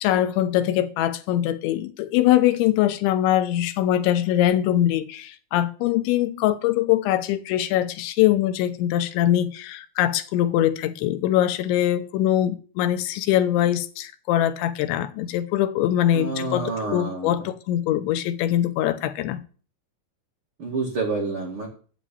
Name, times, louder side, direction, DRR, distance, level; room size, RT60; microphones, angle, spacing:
voice 1, 0.0-19.4, left 12 dB, 80° left, 3.2 m, -22 dB
voice 2, 16.1-17.4 20.6-21.7, right 3 dB, 45° right, 1.9 m, -28 dB
8.7 x 7.3 x 8.5 m
omnidirectional pair, 5.3 m